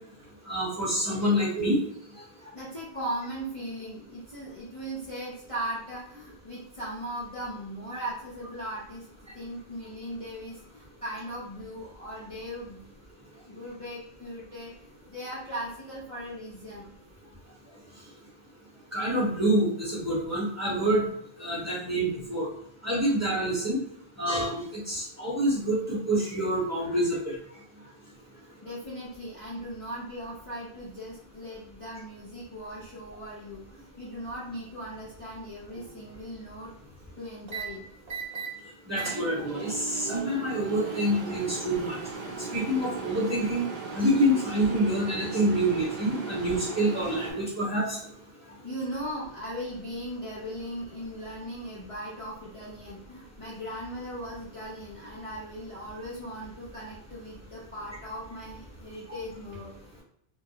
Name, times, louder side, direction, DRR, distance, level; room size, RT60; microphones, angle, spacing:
voice 1, 0.5-1.8 18.9-21.1 21.4-22.5 22.8-23.8 24.2-27.3 38.9-42.0 42.5-43.6 43.9-48.0, right 1 dB, 15° right, -8 dB, 0.9 m, -27 dB
voice 2, 2.5-9.1 9.3-12.8 13.5-16.9 18.7-18.8 28.6-36.7 37.2-37.8 41.5-41.6 46.2-46.4 48.6-59.7, equal, 40° left, -8 dB, 0.6 m, -38 dB
sound 1, 35.7-36.1 37.5-37.6 38.1-38.5 38.9-47.3, right 4 dB, 50° right, 0.5 m, -37 dB
2.2 x 2.0 x 2.8 m, 0.71 s
omnidirectional pair, 1.0 m